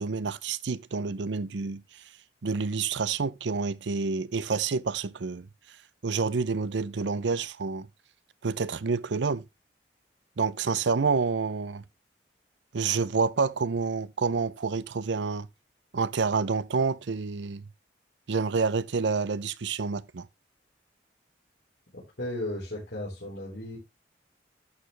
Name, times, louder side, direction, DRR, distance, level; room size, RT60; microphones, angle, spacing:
voice 1, 0.0-2.0 2.4-5.5 6.0-7.9 8.4-9.5 10.4-11.8 12.7-15.5 15.9-17.6 18.3-20.3, right 4 dB, 80° right, 0.6 m, -28 dB
voice 2, 22.2-23.8, left 1 dB, 65° left, 4.0 m, -35 dB
11.5 x 6.8 x 3.2 m
head